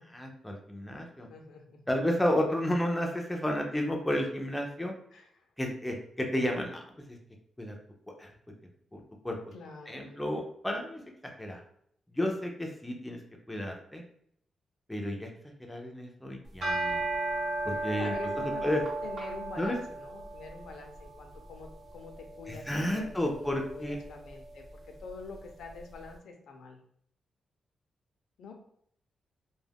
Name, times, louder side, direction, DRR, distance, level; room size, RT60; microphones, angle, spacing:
voice 1, 0.1-1.3 1.9-4.9 5.6-7.2 7.6-7.7 8.2-8.3 8.9-9.4 9.9-11.0 11.4-11.6 12.1-13.2 13.5-14.0 14.9-15.3 15.7-17.0 17.6-18.1 18.6-18.8 19.6-19.8 22.5-24.0, left 1 dB, 5° left, 1 dB, 0.3 m, -32 dB
voice 2, 1.3-1.8 5.1-5.5 9.5-10.2 18.0-26.8 28.4-28.5, left 4 dB, 75° left, 3 dB, 0.5 m, -46 dB
sound 1, 16.5-25.8, right 2 dB, 50° right, 0.6 m, -36 dB
2.3 x 2.1 x 3.3 m, 0.67 s
wide cardioid pair, 170°, 0 cm